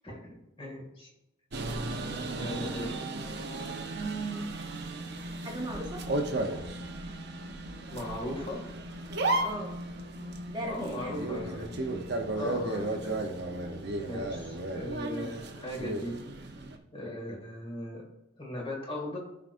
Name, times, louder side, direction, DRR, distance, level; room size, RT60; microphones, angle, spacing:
voice 1, 0.0-1.1 2.4-3.0 7.9-8.7 10.7-11.7 12.3-13.2 13.7-13.8 14.0-16.2 16.9-18.0 18.4-19.2, left 1 dB, 25° left, -2 dB, 2.2 m, -38 dB
sound 1, 1.5-16.8, right 2 dB, 50° right, 0.9 m, -35 dB
voice 2, 3.9-4.6 5.4-6.0 9.4-9.7 10.5-11.3, right 2 dB, 20° right, -1 dB, 0.8 m, -38 dB
14.0 x 4.8 x 2.6 m, 0.91 s
head